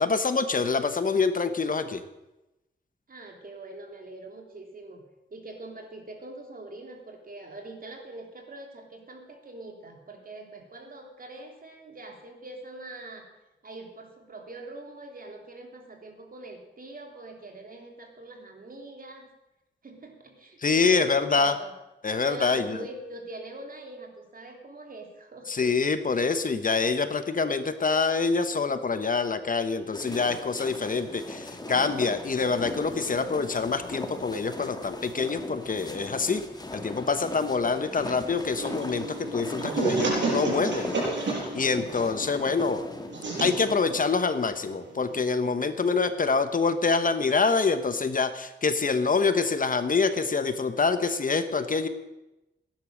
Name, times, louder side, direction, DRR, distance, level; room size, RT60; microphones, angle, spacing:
voice 1, 0.0-2.0 20.6-21.5 22.0-22.8 25.5-36.4 36.7-40.9 41.5-42.8 43.4-51.9, left 4 dB, 45° left, 10 dB, 1.1 m, -26 dB
voice 2, 3.1-5.0 5.3-13.3 13.6-19.3 19.8-21.7 22.2-25.5 45.6-46.2 50.7-50.8, right 2 dB, 50° right, 3 dB, 3.3 m, -43 dB
sound 1, 29.9-44.2, left 2 dB, 20° left, 1.9 m, -39 dB
sound 2, 38.6-45.2, right 3 dB, 80° right, 6.3 m, -31 dB
17.5 x 10.5 x 6.5 m, 0.97 s
wide cardioid pair, 100°, 19 cm